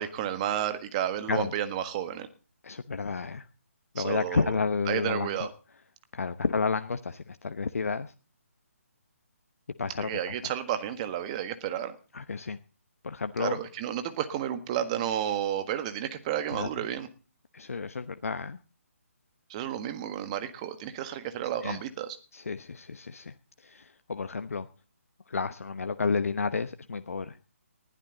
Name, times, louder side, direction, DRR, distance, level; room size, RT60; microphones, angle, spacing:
voice 1, 0.0-2.3 3.9-4.6 4.9-5.5 10.0-11.9 13.4-17.1 19.5-22.2, right 10 dB, 25° right, 9 dB, 1.6 m, -32 dB
voice 2, 2.6-3.4 3.9-5.4 6.1-8.1 9.8-10.5 12.1-12.6 13.0-13.6 16.5-16.7 17.5-18.6 21.6-21.8 22.3-23.3 23.6-24.7 25.3-27.4, left 4 dB, 75° left, 9 dB, 0.9 m, -31 dB
20.0 x 12.0 x 4.0 m, 0.35 s
figure-of-eight pair, 150°, 8 cm